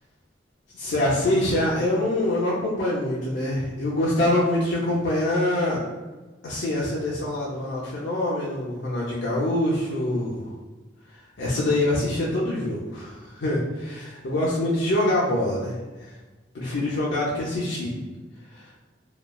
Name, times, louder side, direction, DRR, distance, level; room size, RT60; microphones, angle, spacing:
voice 1, 0.7-5.8 6.4-10.5 11.4-16.1 16.5-18.0 18.5-18.6, left 1 dB, 90° left, -6 dB, 0.5 m, -25 dB
3.0 x 2.3 x 2.2 m, 1.2 s
head